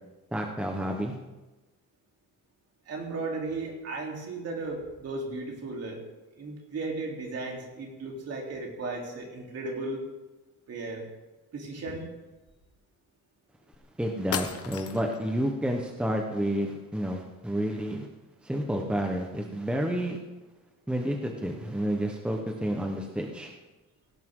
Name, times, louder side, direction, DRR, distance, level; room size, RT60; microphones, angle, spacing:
voice 1, 0.3-1.2 14.0-18.1 18.4-20.2 20.9-23.5, equal, 5° right, 2 dB, 1.1 m, -30 dB
voice 2, 2.9-6.0 6.4-10.0 10.7-11.1 11.5-12.1, right 3 dB, 50° right, -1 dB, 3.6 m, -35 dB
sound 1, 13.7-13.8 14.3-15.2, left 7 dB, 45° left, 1.2 m, -34 dB
17.5 x 17.5 x 3.8 m, 1.1 s
cardioid pair, 180°, 32 cm